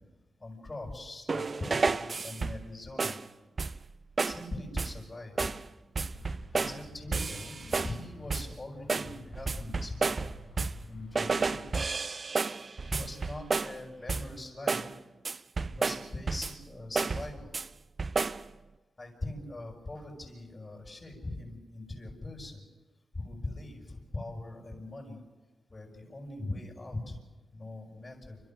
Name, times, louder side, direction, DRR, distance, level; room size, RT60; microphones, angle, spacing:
voice 1, 0.4-3.2 4.2-5.5 6.5-10.3 10.8-11.7 12.8-14.9 15.6-17.5 19.0-22.7 23.1-25.2 25.7-27.2 27.5-28.4, left 2 dB, 35° left, -6 dB, 7.4 m, -41 dB
sound 1, 1.3-2.7 3.0-3.3 3.6-3.9 4.2-4.5 4.8-5.0 5.4-5.7 6.0-6.8 7.1-8.0 8.3-8.6 8.9-10.9 11.2-13.8 14.1-14.4 14.7-14.9 15.2-16.6 17.0-17.7 18.0-18.5, right 4 dB, 45° right, 0.7 m, -31 dB
sound 2, 6.0-11.7, left 3 dB, 65° left, 4.7 m, -50 dB
29.5 x 13.5 x 8.0 m, 1.2 s
cardioid pair, 60°, 0 cm